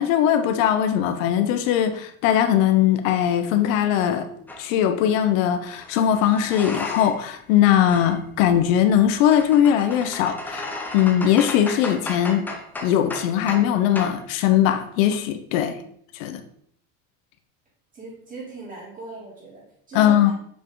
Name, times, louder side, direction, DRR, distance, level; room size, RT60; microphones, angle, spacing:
voice 1, 0.0-4.3 4.6-10.6 10.9-12.5 12.8-15.7 16.1-16.4 19.9-20.3, left 10 dB, 75° left, 8 dB, 1.0 m, -20 dB
sound 1, 4.5-4.7 5.7-7.3 7.6-13.7 14.0-14.2, left 2 dB, 5° left, 0.3 m, -35 dB
voice 2, 17.9-20.3, right 2 dB, 20° right, -5 dB, 3.1 m, -40 dB
7.2 x 5.6 x 3.9 m, 0.66 s
cardioid pair, 165°, 40 cm